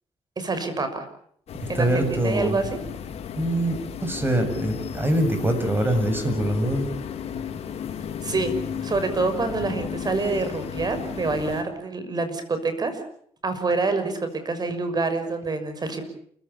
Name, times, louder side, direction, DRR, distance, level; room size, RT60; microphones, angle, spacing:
voice 1, 0.4-1.1 1.7-2.8 8.2-13.0 13.4-16.1, right 3 dB, 35° right, 9 dB, 6.1 m, -27 dB
sound 1, 1.5-11.6, left 7 dB, 65° left, 2.8 m, -34 dB
voice 2, 1.5-2.6 3.4-6.9, right 1 dB, 20° right, 7 dB, 7.2 m, -24 dB
29.0 x 16.0 x 8.6 m, 0.64 s
cardioid pair, 85°, 11 cm